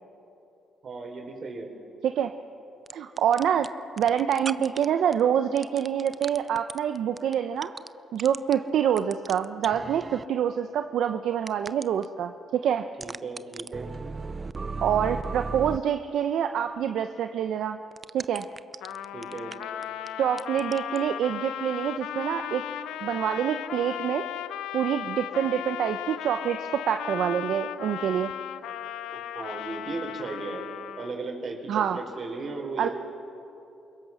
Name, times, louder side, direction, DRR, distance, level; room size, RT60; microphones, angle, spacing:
voice 1, 0.8-1.7 13.0-13.9 19.1-19.5 29.1-30.7 31.0-32.9, right 3 dB, 50° right, 2 dB, 5.2 m, -36 dB
sound 1, 2.9-3.7 4.0-4.8 5.1-5.2 5.6-7.9 8.2-8.5 9.0-10.2 11.5-12.1 13.0-15.8 17.9-20.1 20.4-21.0, right 4 dB, 30° right, 0.5 m, -35 dB
voice 2, 2.9-3.7 4.0-7.7 8.1-12.8 14.8-17.8 18.1-18.4 20.2-22.6 23.0-24.3 24.7-28.3 31.7-32.0 32.8-32.9, right 9 dB, 75° right, 7 dB, 0.8 m, -26 dB
Trumpet, 18.8-31.3, left 11 dB, 85° left, 0.7 m, -36 dB
30.0 x 22.0 x 6.3 m, 2.9 s
cardioid pair, 90°, 0 cm